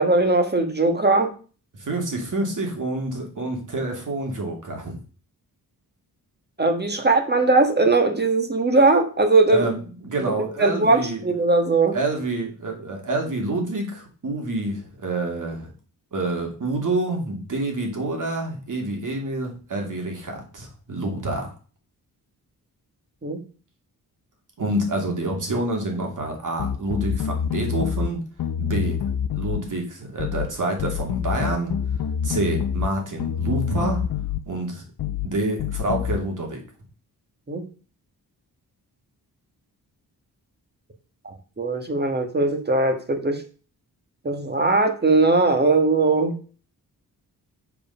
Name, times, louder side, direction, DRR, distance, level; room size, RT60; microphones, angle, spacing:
voice 1, 0.0-1.3 6.6-9.7 10.3-12.0 23.2-23.4 37.5-37.7 41.2-43.4 44.2-46.4, right 3 dB, 25° right, 5 dB, 1.4 m, -20 dB
voice 2, 1.8-5.0 9.5-9.8 10.0-11.2 11.9-15.7 16.1-21.5 24.6-28.2 28.6-29.0 29.3-31.7 32.2-34.0 34.5-34.8 35.2-36.6, right 2 dB, 55° right, 2 dB, 2.7 m, -27 dB
sound 1, 26.6-28.1 28.4-29.6 30.2-30.5 30.8-32.9 33.2-34.4 35.0-35.3 35.6-36.2, left 8 dB, 65° left, 0.7 m, -26 dB
7.1 x 4.9 x 5.5 m, 0.38 s
cardioid pair, 95°, 38 cm